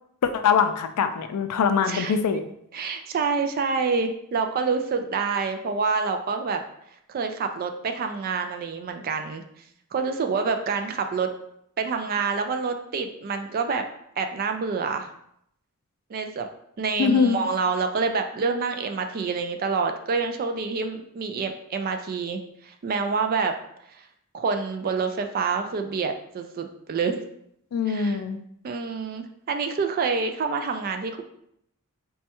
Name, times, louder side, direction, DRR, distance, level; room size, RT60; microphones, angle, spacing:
voice 1, 0.2-2.4 17.0-17.4 27.7-28.4, left 6 dB, 90° left, 8 dB, 0.4 m, -22 dB
voice 2, 2.7-6.6 7.1-9.4 9.9-11.3 11.8-13.8 14.2-15.1 16.1-16.5 16.8-23.5 24.3-27.2 27.9-28.2 28.6-31.2, right 5 dB, 40° right, 6 dB, 0.3 m, -27 dB
4.2 x 2.3 x 2.8 m, 0.73 s
head